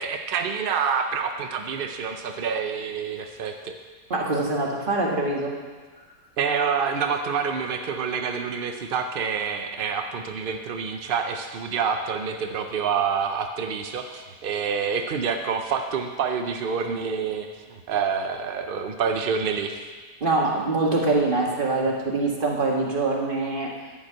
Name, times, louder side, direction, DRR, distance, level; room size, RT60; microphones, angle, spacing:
voice 1, 0.0-3.8 6.4-19.8, right 6 dB, 70° right, 5 dB, 0.5 m, -27 dB
voice 2, 4.1-5.5 20.2-23.7, right 2 dB, 30° right, -2 dB, 1.7 m, -24 dB
10.5 x 5.7 x 8.8 m, 1.4 s
omnidirectional pair, 1.8 m